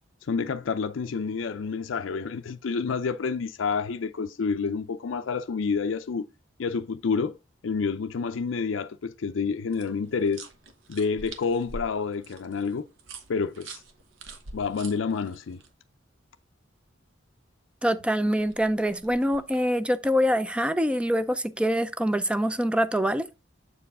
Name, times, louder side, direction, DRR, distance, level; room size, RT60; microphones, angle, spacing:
voice 1, 0.3-6.3 6.6-7.3 7.6-10.5 10.9-12.9 13.3-13.8 14.5-15.6, left 5 dB, 75° left, 0.5 m, -28 dB
sound 1, 9.7-15.7 18.2-19.7, right 3 dB, 75° right, 1.1 m, -45 dB
voice 2, 17.8-23.3, equal, 5° right, 0.4 m, -25 dB
7.4 x 4.6 x 3.5 m
head